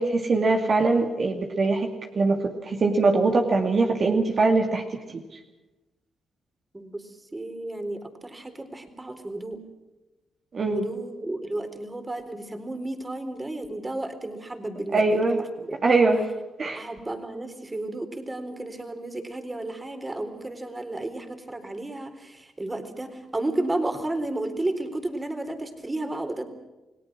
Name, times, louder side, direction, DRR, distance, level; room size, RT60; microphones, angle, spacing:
voice 1, 0.0-5.2 10.5-10.9 14.9-15.4 15.8-16.2 16.6-16.9, right 3 dB, 50° right, 3 dB, 2.5 m, -22 dB
voice 2, 6.7-9.6 10.7-15.2 15.6-15.9 16.8-26.4, right 2 dB, 20° right, 7 dB, 4.0 m, -32 dB
29.0 x 18.0 x 6.2 m, 1.1 s
cardioid pair, 75°, 0 cm